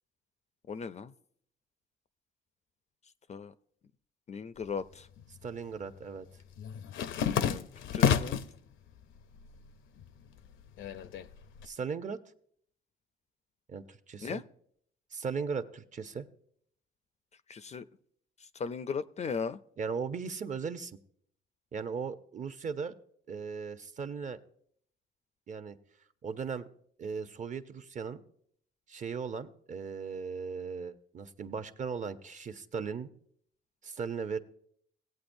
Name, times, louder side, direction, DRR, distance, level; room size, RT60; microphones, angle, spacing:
voice 1, 0.7-1.1 3.3-3.5 4.3-5.1 7.3-7.7 7.9-8.4 14.2-14.4 17.5-17.8 18.6-19.6, left 5 dB, 35° left, 14 dB, 0.4 m, -37 dB
sound 1, 4.7-5.5 5.8-8.6 9.0-9.7 10.0-11.6, left 8 dB, 80° left, 0.6 m, -31 dB
voice 2, 5.4-6.3 11.6-12.2 13.7-14.4 15.1-16.3 19.8-21.0 21.7-22.9 23.3-24.4 25.5-25.8 26.2-26.7 27.0-28.2 28.9-33.1 33.8-34.4, right 5 dB, 40° right, 10 dB, 0.7 m, -37 dB
17.0 x 8.3 x 2.6 m, 0.65 s
cardioid pair, 90°, 20 cm